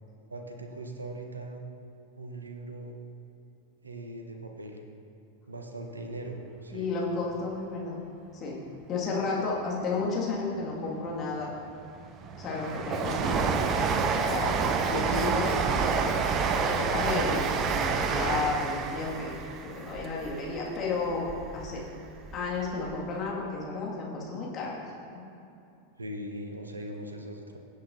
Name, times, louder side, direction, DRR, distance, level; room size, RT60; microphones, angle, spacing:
voice 1, 0.3-1.6 2.2-2.9 3.8-4.8 5.5-6.9 26.0-27.6, right 1 dB, 75° right, 3 dB, 1.0 m, -40 dB
voice 2, 6.7-8.0 8.3-8.6 8.9-11.5 12.4-14.5 14.9-15.6 16.6-19.3 19.7-21.3 21.5-21.8 22.3-24.8, left 3 dB, 30° left, -4 dB, 2.2 m, -32 dB
Train, 11.5-21.7 22.1-23.0 23.3-23.4, right 5 dB, 30° right, 0.7 m, -29 dB
17.0 x 8.3 x 2.8 m, 2.7 s
figure-of-eight pair, 90°, 0 cm